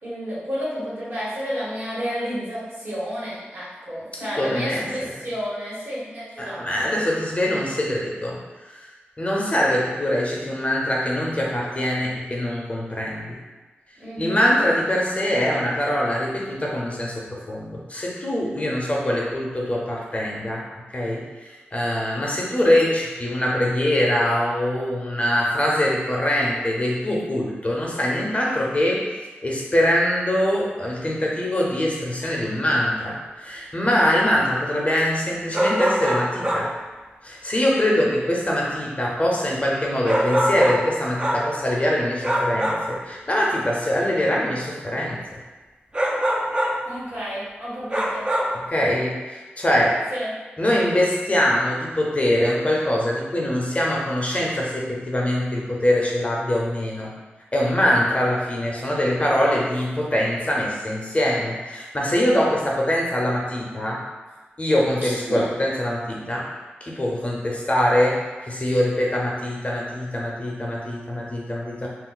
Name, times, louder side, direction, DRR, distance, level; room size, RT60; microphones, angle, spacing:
voice 1, 0.0-6.9 14.0-14.4 37.8-38.1 46.8-48.3 50.1-50.3 65.0-65.5, equal, 65° right, -10 dB, 1.4 m, -31 dB
voice 2, 4.1-4.9 6.4-8.4 8.7-8.9 9.2-13.4 14.2-20.6 20.9-29.1 29.4-36.7 37.2-45.4 48.7-50.0 50.6-57.1 57.5-64.0 64.6-66.5 66.8-71.9, left 1 dB, 30° left, -3 dB, 0.6 m, -23 dB
sound 1, 35.5-36.8 40.0-41.6 42.2-43.0 45.9-46.9 47.9-48.6, equal, 25° right, 0.5 m, -23 dB
2.4 x 2.0 x 3.8 m, 1.3 s
cardioid pair, 50°, 4 cm